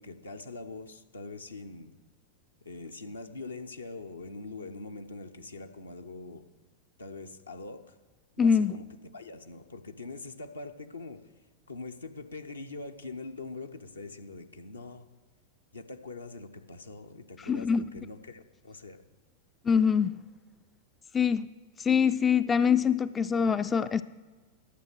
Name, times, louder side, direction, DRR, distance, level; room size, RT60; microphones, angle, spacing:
voice 1, 0.0-1.9 2.6-6.4 7.0-8.0 8.4-8.9 9.1-11.2 11.7-15.1 15.7-19.0, left 3 dB, 80° left, 5 dB, 0.8 m, -43 dB
voice 2, 8.4-8.7 17.4-17.8 19.7-20.2 21.1-21.5 21.8-24.0, left 6 dB, 20° left, 12 dB, 0.3 m, -24 dB
11.5 x 7.0 x 6.2 m, 1.4 s
figure-of-eight pair, 90°, 0 cm